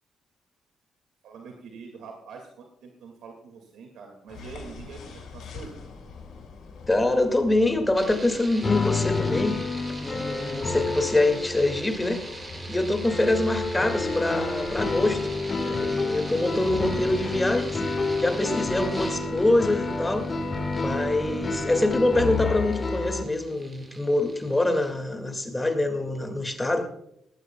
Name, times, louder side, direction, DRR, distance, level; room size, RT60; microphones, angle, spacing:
voice 1, 1.2-5.8, right 4 dB, 80° right, 2 dB, 2.1 m, -44 dB
sound 1, 4.3-22.5, left 4 dB, 65° left, 6.2 m, -46 dB
voice 2, 6.9-9.6 10.0-12.2 12.7-15.3 15.6-17.8 18.2-20.3 20.7-26.9, left 2 dB, 15° left, 6 dB, 2.1 m, -25 dB
sound 2, 7.9-24.9, right 2 dB, 25° right, 5.7 m, -43 dB
sound 3, 8.6-23.2, left 3 dB, 35° left, 1.8 m, -29 dB
19.0 x 14.5 x 2.3 m, 0.75 s
cardioid pair, 90°, 0 cm